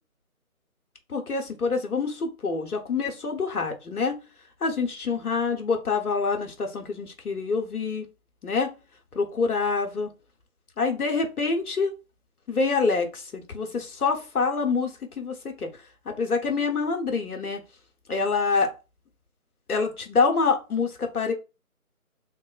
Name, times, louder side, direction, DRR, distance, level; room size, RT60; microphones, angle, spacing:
voice 1, 1.1-4.2 4.6-8.0 8.4-8.7 9.1-10.1 10.8-11.9 12.5-15.7 16.1-17.6 18.1-18.7 19.7-21.3, left 4 dB, 90° left, 3 dB, 0.9 m, -26 dB
3.1 x 2.0 x 2.3 m, 0.30 s
figure-of-eight pair, 165°, 43 cm